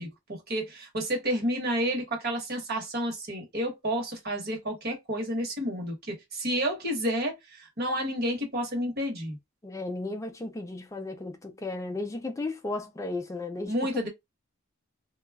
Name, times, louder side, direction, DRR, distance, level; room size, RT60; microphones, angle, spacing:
voice 1, 0.0-9.4 13.6-14.1, equal, 50° right, 1.1 m, -30 dB
voice 2, 9.6-13.8, left 2 dB, 15° left, 0.4 m, -34 dB
2.3 x 2.0 x 3.3 m
head